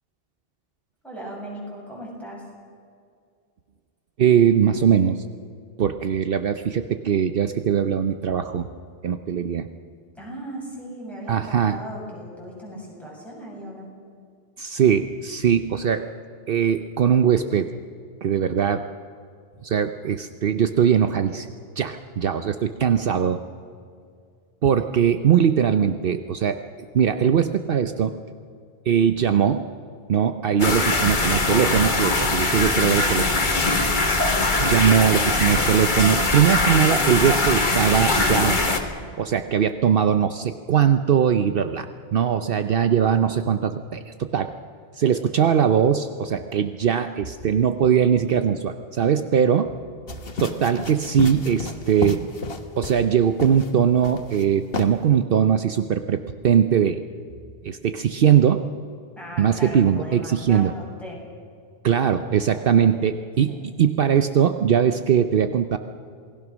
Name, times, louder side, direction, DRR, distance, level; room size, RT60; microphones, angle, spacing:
voice 1, 1.0-2.5 10.1-13.9 59.2-61.2 62.4-62.8 63.5-63.6, right 1 dB, ahead, -4 dB, 7.6 m, -37 dB
voice 2, 4.2-5.2 5.8-8.7 9.0-9.7 11.3-11.8 14.6-16.1 16.5-17.7 18.2-18.8 19.6-21.5 21.8-23.4 24.6-26.6 26.9-28.1 28.9-29.7 30.1-33.5 34.6-38.6 39.2-41.9 42.1-44.5 44.9-49.7 50.4-52.2 52.8-57.0 57.6-58.6 59.4-60.7 61.8-65.8, right 8 dB, 65° right, 9 dB, 0.9 m, -20 dB
sound 1, 30.6-38.8, left 2 dB, 50° left, 1.9 m, -21 dB
sound 2, 50.1-53.1 53.4-53.7 54.0-54.4 54.7-54.9, left 4 dB, 65° left, 1.6 m, -32 dB
27.5 x 19.5 x 6.2 m, 2.3 s
omnidirectional pair, 1.0 m